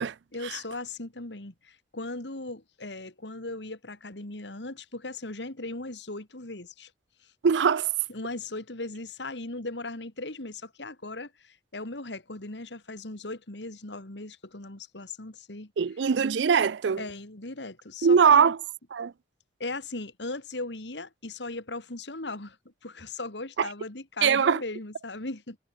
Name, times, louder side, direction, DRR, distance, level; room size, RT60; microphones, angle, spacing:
voice 1, 0.3-6.9 8.1-15.7 17.0-18.5 19.6-22.6 22.8-25.6, left 2 dB, 80° left, 2.6 m, -38 dB
voice 2, 7.4-7.9 15.8-17.0 18.0-18.6 18.9-19.1 23.6-23.7 24.2-24.6, right 6 dB, 85° right, 0.5 m, -21 dB
head